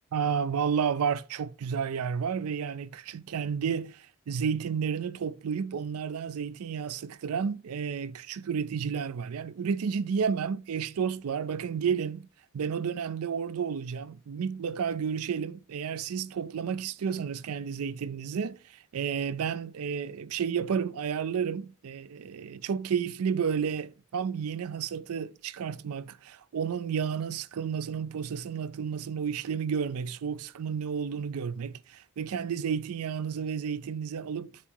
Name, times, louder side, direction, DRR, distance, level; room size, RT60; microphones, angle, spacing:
voice 1, 0.1-12.3 12.5-34.5, right 7 dB, 75° right, 0.4 m, -31 dB
7.3 x 3.0 x 4.4 m
head